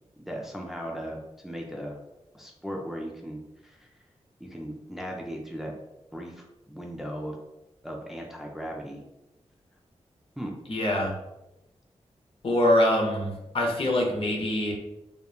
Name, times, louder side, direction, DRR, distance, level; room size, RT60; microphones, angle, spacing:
voice 1, 0.2-2.0 2.3-3.9 4.4-5.7 6.1-7.4 7.8-9.1 10.4-10.5, equal, 5° right, 0 dB, 0.4 m, -37 dB
voice 2, 10.7-11.2 12.4-14.7, left 1 dB, 50° left, -1 dB, 0.7 m, -24 dB
2.9 x 2.1 x 2.3 m, 0.94 s
cardioid pair, 60°, 12 cm